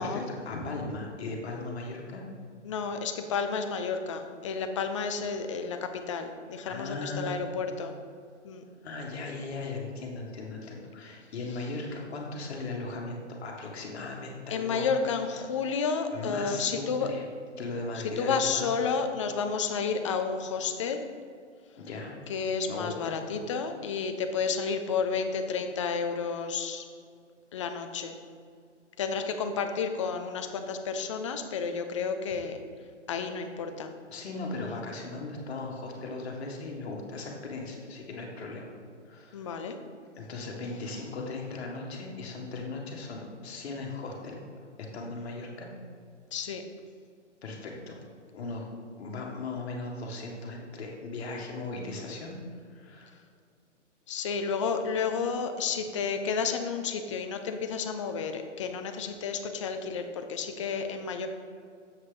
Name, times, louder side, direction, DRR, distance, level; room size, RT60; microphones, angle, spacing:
voice 1, 0.0-2.2 6.7-7.3 8.8-14.9 15.3-15.4 16.1-17.2 17.6-18.7 21.7-22.1 22.7-23.2 34.1-38.7 39.0-39.5 40.1-44.4 44.9-45.7 47.4-48.0 48.3-48.6 49.0-52.4 52.7-53.1, left 3 dB, 60° left, 0 dB, 1.7 m, -37 dB
voice 2, 2.6-7.9 8.4-8.6 14.5-17.1 17.9-21.0 22.3-26.8 27.5-28.2 29.0-32.6 33.1-33.9 39.3-39.8 46.3-46.6 54.1-61.3, left 5 dB, 25° left, 7 dB, 0.4 m, -31 dB
7.3 x 6.4 x 3.8 m, 2.2 s
hypercardioid pair, 140°, 36 cm